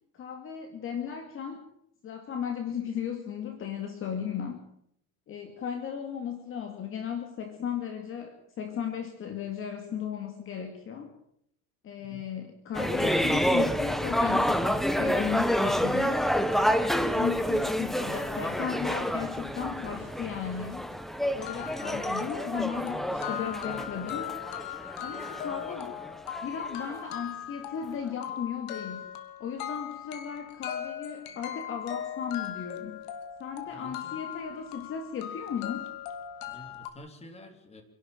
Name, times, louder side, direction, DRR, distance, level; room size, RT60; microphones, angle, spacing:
voice 1, 0.1-1.6 2.0-4.6 5.3-11.1 11.8-16.2 16.8-20.9 21.3-24.3 25.0-26.0 26.4-29.1 29.4-33.0 33.4-35.9, left 8 dB, 35° left, 6 dB, 2.3 m, -36 dB
sound 1, 12.7-27.1, equal, ahead, 0.8 m, -29 dB
sound 2, 20.9-21.0 21.4-36.9, left 10 dB, 70° left, 3.0 m, -39 dB
voice 2, 21.5-22.0 33.7-34.2 36.5-37.8, left 1 dB, 15° left, 6 dB, 3.4 m, -49 dB
27.0 x 12.0 x 9.0 m, 0.72 s
cardioid pair, 160°, 38 cm